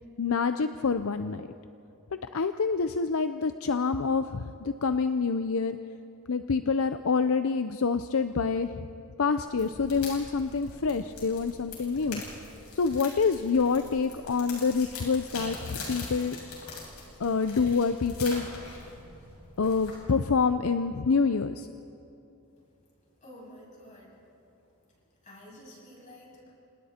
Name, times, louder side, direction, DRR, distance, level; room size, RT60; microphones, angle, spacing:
voice 1, 0.2-1.5 2.3-5.8 6.3-8.9 9.2-12.2 12.7-16.4 17.2-18.5 19.6-21.7, left 5 dB, 65° left, 10 dB, 0.6 m, -27 dB
sound 1, 9.5-20.3, left 3 dB, 85° left, 7.7 m, -43 dB
voice 2, 23.2-24.2 25.2-26.5, left 1 dB, 35° left, -3 dB, 7.8 m, -50 dB
30.0 x 27.0 x 4.4 m, 2.8 s
head